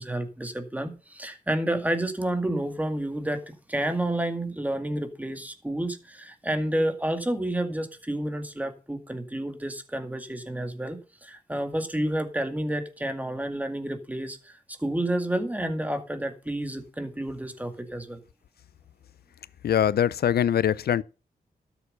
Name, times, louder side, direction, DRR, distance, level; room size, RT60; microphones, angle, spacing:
voice 1, 0.0-14.5 14.8-18.2, right 1 dB, 10° right, 2.1 m, -30 dB
voice 2, 19.6-21.0, left 9 dB, 80° left, 0.5 m, -22 dB
12.5 x 6.9 x 5.5 m
cardioid pair, 85°, 16 cm